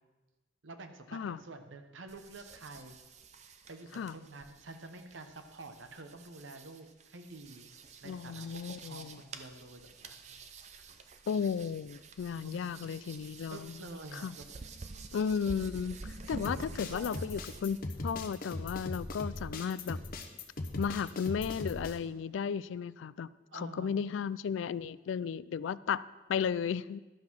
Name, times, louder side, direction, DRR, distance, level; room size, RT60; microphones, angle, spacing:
voice 1, 0.6-3.0 3.7-7.7 8.0-10.4 10.8-10.9 12.4-13.0 13.5-15.0 16.4-17.2 23.5-24.0, right 2 dB, 85° right, 7 dB, 1.0 m, -49 dB
sound 1, 2.1-17.8, right 3 dB, 35° right, 0.6 m, -49 dB
voice 2, 8.0-9.2 11.3-13.8 14.1-14.3 15.1-20.0 20.8-27.0, left 7 dB, 80° left, 18 dB, 0.3 m, -34 dB
sound 2, 16.4-22.0, left 2 dB, 50° left, 0.9 m, -39 dB
12.0 x 5.7 x 6.1 m, 1.2 s
head